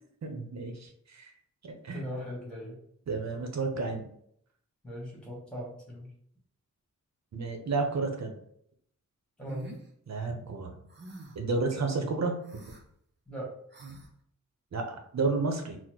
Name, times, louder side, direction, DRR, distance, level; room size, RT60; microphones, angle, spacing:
voice 1, 0.2-1.3 1.6-2.0 3.1-4.0 7.3-8.3 10.1-10.8 11.3-12.4 14.7-15.8, right 3 dB, 65° right, 4 dB, 0.8 m, -31 dB
voice 2, 1.9-2.8 4.8-6.1 9.4-9.7 13.3-13.5, equal, 5° left, -5 dB, 1.7 m, -39 dB
sound 1, 9.5-9.8 10.9-11.5 12.4-12.8 13.7-14.1, right 2 dB, 40° right, 0.7 m, -46 dB
4.2 x 2.1 x 4.4 m, 0.68 s
wide cardioid pair, 140°, 30 cm